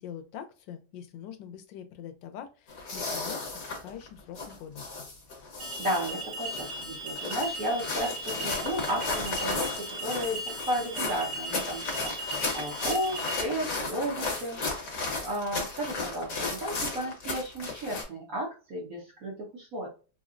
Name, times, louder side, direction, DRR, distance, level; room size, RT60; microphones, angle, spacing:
voice 1, 0.0-4.9, left 9 dB, 90° left, 8 dB, 1.3 m, -44 dB
sound 1, 2.7-18.0, left 3 dB, 55° left, 1.4 m, -34 dB
Alarm, 5.6-13.4, right 1 dB, 70° right, 1.6 m, -38 dB
voice 2, 5.8-9.6 10.0-10.4 10.7-14.6 15.2-19.9, equal, 55° right, -4 dB, 1.4 m, -33 dB
4.2 x 2.0 x 2.4 m, 0.34 s
omnidirectional pair, 1.9 m